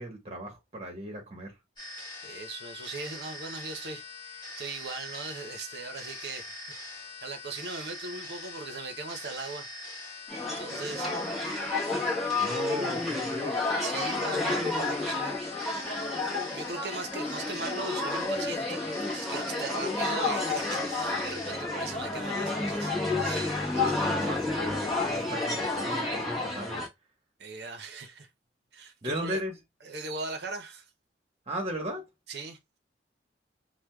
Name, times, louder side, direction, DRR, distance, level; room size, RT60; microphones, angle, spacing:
voice 1, 0.0-1.6 12.4-13.6 24.0-26.8 29.0-29.5 31.5-32.0, equal, 35° right, 1.1 m, -36 dB
sound 1, 1.8-21.5, left 2 dB, 25° left, 1.5 m, -43 dB
voice 2, 2.0-4.0 4.3-6.6 7.2-9.7 10.4-11.1 13.8-15.4 16.0-16.2 16.5-24.3 27.4-28.3 28.7-29.4 29.8-30.9 32.3-32.6, right 3 dB, 65° right, 0.7 m, -39 dB
sound 2, 10.3-26.9, left 2 dB, ahead, 1.0 m, -30 dB
4.8 x 2.1 x 2.2 m
head